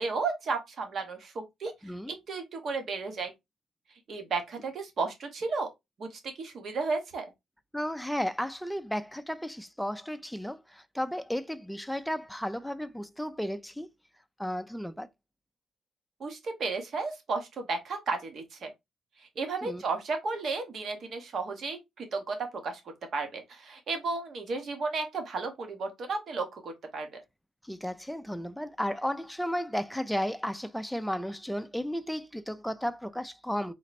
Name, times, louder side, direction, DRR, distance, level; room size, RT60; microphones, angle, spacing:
voice 1, 0.0-1.7 2.1-3.3 4.1-5.7 6.0-7.3 16.2-18.7 19.4-22.8 23.1-27.2, right 4 dB, 55° right, 1.3 m, -33 dB
voice 2, 1.8-2.2 7.7-13.9 14.4-15.1 19.6-19.8 27.6-33.7, equal, ahead, 0.5 m, -34 dB
4.0 x 2.1 x 4.2 m
cardioid pair, 90°, 0 cm